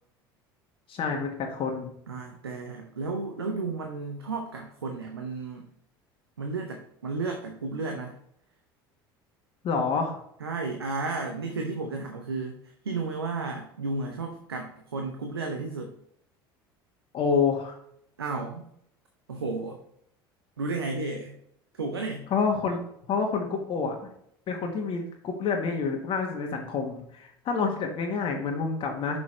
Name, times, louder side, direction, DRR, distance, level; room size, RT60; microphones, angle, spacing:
voice 1, 0.9-1.9 9.6-10.2 17.1-17.8 22.3-22.8 23.1-24.0 24.5-29.2, left 5 dB, 45° left, 2 dB, 1.4 m, -28 dB
voice 2, 2.1-5.7 6.4-8.2 10.4-15.9 18.2-18.7 19.3-19.8 20.6-21.4 21.7-22.3, right 3 dB, 90° right, 3 dB, 0.8 m, -33 dB
6.2 x 6.1 x 3.2 m, 0.71 s
hypercardioid pair, 70°, 12 cm